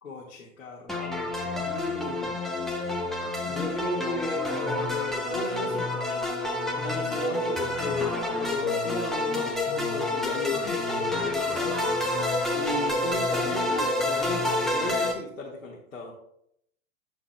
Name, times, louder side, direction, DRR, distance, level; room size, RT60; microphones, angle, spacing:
voice 1, 0.0-2.4 3.4-6.3 6.7-16.1, left 3 dB, 85° left, -4 dB, 1.8 m, -35 dB
sound 1, 0.9-15.1, left 2 dB, ahead, 1.2 m, -28 dB
11.0 x 6.8 x 2.3 m, 0.73 s
figure-of-eight pair, 100°, 40 cm